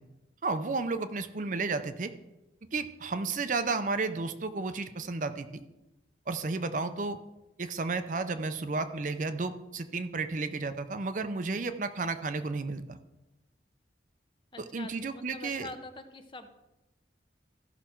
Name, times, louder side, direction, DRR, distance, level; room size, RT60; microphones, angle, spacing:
voice 1, 0.4-2.1 2.7-5.6 6.3-7.2 7.6-13.0 14.6-15.7, right 3 dB, 45° right, 9 dB, 0.6 m, -32 dB
voice 2, 14.5-16.6, left 2 dB, 25° left, 8 dB, 0.7 m, -45 dB
14.5 x 5.9 x 4.5 m, 0.98 s
head